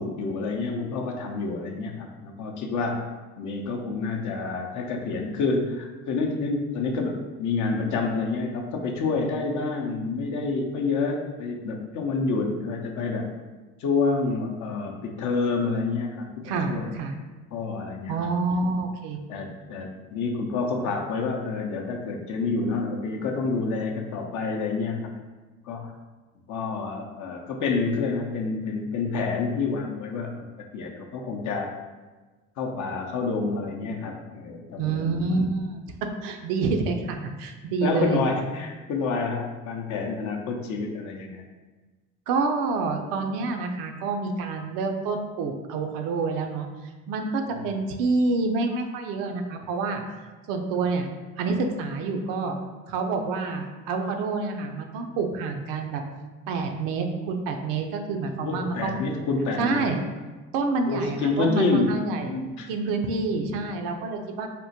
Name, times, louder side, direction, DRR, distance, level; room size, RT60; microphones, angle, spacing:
voice 1, 0.0-3.1 3.4-13.3 13.8-16.9 17.5-18.3 19.3-25.1 25.6-25.9 26.5-30.4 30.7-31.7 32.6-35.5 37.8-41.4 47.5-47.7 58.4-59.9 60.8-61.9 62.2-62.7, left 4 dB, 55° left, 1 dB, 0.6 m, -28 dB
voice 2, 16.4-17.2 18.1-19.2 34.8-35.8 36.2-38.2 42.3-46.7 47.1-50.0 50.5-51.1 51.4-52.6 52.9-56.0 56.5-58.9 59.6-60.0 60.5-62.3 62.7-64.5, right 3 dB, 70° right, 4 dB, 0.5 m, -27 dB
3.6 x 2.1 x 2.7 m, 1.3 s
hypercardioid pair, 60°, 34 cm